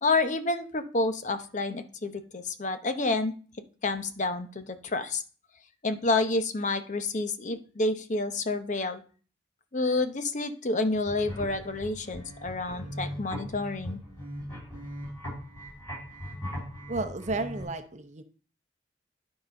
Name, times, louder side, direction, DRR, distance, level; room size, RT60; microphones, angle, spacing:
voice 1, 0.0-3.3 3.8-5.2 5.8-9.0 9.7-14.0, left 2 dB, 45° left, 8 dB, 0.8 m, -29 dB
sound 1, 10.9-17.6, equal, 15° left, 5.4 m, -39 dB
voice 2, 16.9-18.2, right 3 dB, 40° right, 9 dB, 0.7 m, -32 dB
11.5 x 4.0 x 5.2 m, 0.40 s
head